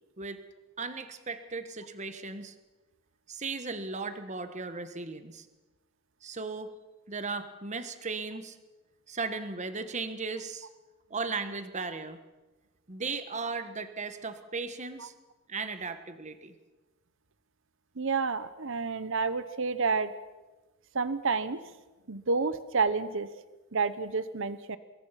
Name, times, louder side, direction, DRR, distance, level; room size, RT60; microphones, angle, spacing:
voice 1, 0.8-2.5 3.3-5.5 6.2-6.7 7.1-8.6 9.1-10.7 11.1-12.2 12.9-15.1 15.5-16.5, right 4 dB, 35° right, 10 dB, 1.4 m, -36 dB
voice 2, 18.0-20.1 20.9-21.6 22.1-23.3 23.7-24.8, right 4 dB, 65° right, 14 dB, 1.0 m, -29 dB
24.5 x 21.0 x 5.9 m, 1.1 s
head